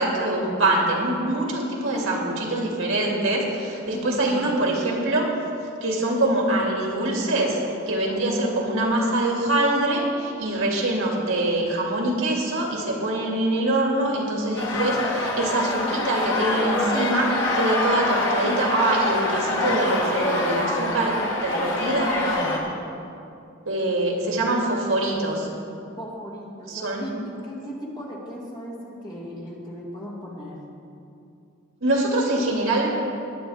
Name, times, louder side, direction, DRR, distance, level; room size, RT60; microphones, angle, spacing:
voice 1, 0.0-5.3 5.8-7.6 7.9-22.8 23.7-25.5 26.7-27.0 31.8-32.9, right 1 dB, 75° right, -2 dB, 2.4 m, -24 dB
voice 2, 3.9-4.7 26.0-30.6, equal, 20° left, -4 dB, 2.2 m, -37 dB
sound 1, 14.6-22.6, left 2 dB, 60° left, 1.8 m, -25 dB
20.5 x 8.8 x 3.6 m, 2.6 s
head